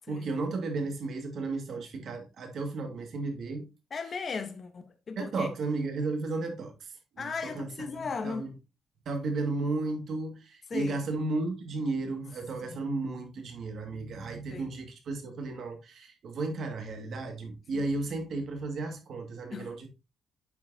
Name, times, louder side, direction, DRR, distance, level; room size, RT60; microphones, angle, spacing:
voice 1, 0.1-3.6 5.2-6.7 7.2-8.5 9.1-19.9, right 3 dB, 55° right, 1.9 m, -34 dB
voice 2, 3.9-5.5 7.2-8.5 10.7-11.0 12.6-12.8 14.5-14.7 17.7-17.8 19.5-19.7, left 5 dB, 35° left, 0.9 m, -37 dB
8.8 x 5.7 x 2.7 m
cardioid pair, 155°, 0 cm